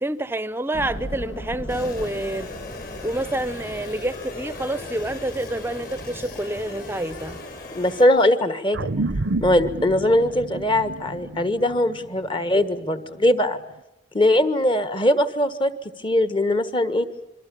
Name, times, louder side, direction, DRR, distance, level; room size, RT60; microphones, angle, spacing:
voice 1, 0.0-2.5 3.0-7.4, right 1 dB, 10° right, 0.8 m, -28 dB
sound 1, 0.7-5.6, equal, 70° left, 1.9 m, -38 dB
sound 2, 1.7-8.1, left 2 dB, 50° left, 7.3 m, -37 dB
voice 2, 7.7-8.9 9.4-13.6 14.1-15.7 16.0-17.1, left 1 dB, 25° left, 1.5 m, -20 dB
sound 3, 8.7-13.5, right 2 dB, 70° right, 0.8 m, -30 dB
27.0 x 23.5 x 7.1 m
head